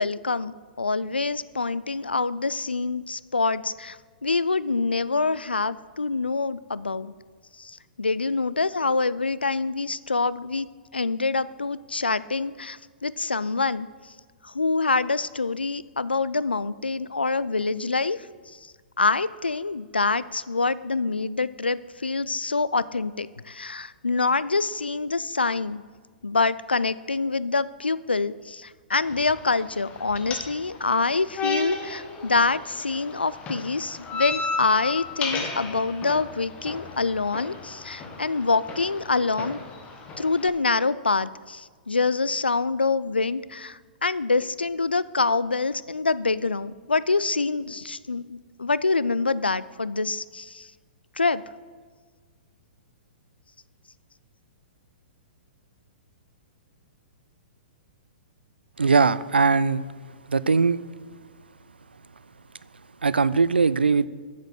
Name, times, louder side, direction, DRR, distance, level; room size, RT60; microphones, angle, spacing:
voice 1, 0.0-7.1 7.6-10.7 10.9-13.9 14.4-18.2 19.0-25.8 26.2-39.6 40.2-50.7 51.2-51.4, left 3 dB, 90° left, 18 dB, 0.3 m, -26 dB
sound 1, 29.0-40.5, left 4 dB, 25° left, 1.3 m, -35 dB
voice 2, 58.8-59.8 60.3-60.8 63.0-64.1, right 4 dB, 85° right, 18 dB, 0.3 m, -20 dB
7.7 x 7.4 x 6.4 m, 1.5 s
figure-of-eight pair, 115°, 5 cm